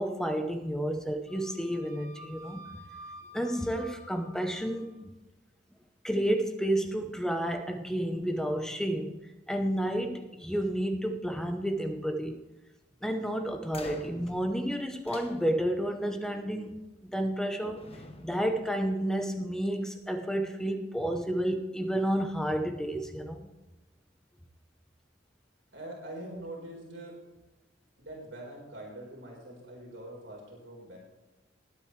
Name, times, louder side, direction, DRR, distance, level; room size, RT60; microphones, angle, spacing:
voice 1, 0.0-2.6 3.3-5.1 6.0-9.2 9.5-12.4 13.0-17.9 18.2-23.5, right 1 dB, 5° left, 6 dB, 0.8 m, -31 dB
Wind instrument woodwind instrument, 1.3-4.9, right 1 dB, 90° left, 2.7 m, -50 dB
sound 1, 13.7-16.0 17.1-17.5 17.8-19.5, left 2 dB, 35° left, 1.1 m, -49 dB
voice 2, 25.7-27.2 28.0-31.0, right 1 dB, 70° right, -2 dB, 4.3 m, -43 dB
20.0 x 8.8 x 3.3 m, 1.1 s
head